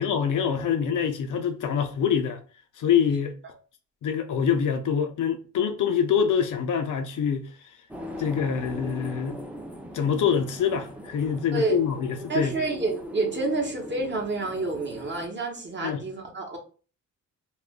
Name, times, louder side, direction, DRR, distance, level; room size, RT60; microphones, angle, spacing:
voice 1, 0.0-2.4 2.8-3.4 4.0-7.5 8.2-9.4 9.9-12.6 15.8-16.0, left 7 dB, 65° left, 0.5 m, -25 dB
sound 1, 7.9-15.3, left 1 dB, 5° right, 0.5 m, -40 dB
voice 2, 12.3-16.6, right 3 dB, 35° right, 0.9 m, -28 dB
2.4 x 2.1 x 3.4 m
cardioid pair, 95°, 33 cm